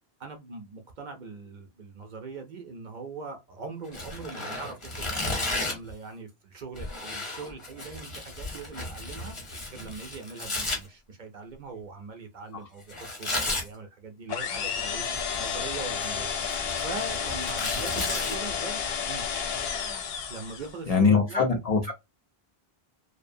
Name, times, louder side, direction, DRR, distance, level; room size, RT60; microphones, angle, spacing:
voice 1, 0.2-9.3 9.7-16.4 16.8-18.8 19.1-19.3 20.3-21.4, right 4 dB, 55° right, 0.6 m, -41 dB
Tearing, 3.9-5.9 6.7-10.8 12.9-13.7 15.0-15.5 15.9-18.3, left 2 dB, 30° left, 0.9 m, -33 dB
sound 1, 14.3-20.8, left 7 dB, 75° left, 0.8 m, -31 dB
voice 2, 20.9-21.9, left 5 dB, 50° left, 0.5 m, -23 dB
2.6 x 2.1 x 2.5 m
omnidirectional pair, 1.1 m